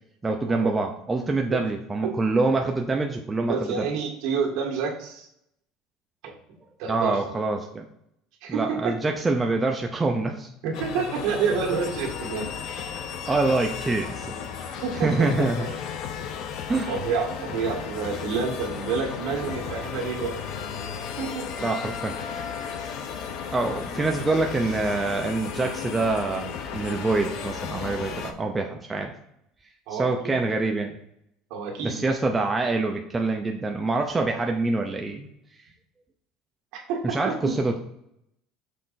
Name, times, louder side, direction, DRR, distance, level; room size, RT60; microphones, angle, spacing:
voice 1, 0.2-3.9 6.9-7.8 8.5-10.5 13.3-14.3 14.6-15.7 16.7-16.9 21.6-22.2 23.5-29.1 29.9-30.9 31.8-35.3 37.0-37.8, right 3 dB, 10° right, 2 dB, 0.5 m, -25 dB
voice 2, 3.5-5.3 6.2-6.3 6.8-7.4 8.4-9.0 10.6-12.5 14.8-15.8 16.2-16.3 16.9-20.3 21.2-21.4 29.9-30.4 31.5-32.1 36.7-37.5, right 5 dB, 60° right, -1 dB, 1.8 m, -29 dB
sound 1, 10.7-28.3, left 7 dB, 55° left, 0.8 m, -34 dB
6.5 x 4.3 x 4.0 m, 0.77 s
cardioid pair, 165°, 0 cm